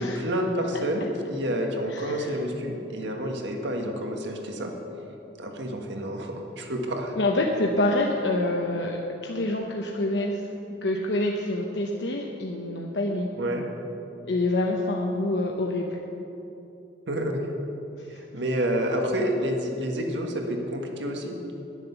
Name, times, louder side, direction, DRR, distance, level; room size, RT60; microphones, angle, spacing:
voice 1, 0.0-4.7 5.4-7.1 13.4-13.6 17.1-17.4 18.1-21.3, equal, 80° right, 2 dB, 1.6 m, -29 dB
voice 2, 1.9-2.3 7.2-10.4 10.8-13.3 14.2-15.9, left 2 dB, 70° left, 0 dB, 0.9 m, -26 dB
10.5 x 9.9 x 7.0 m, 2.9 s
head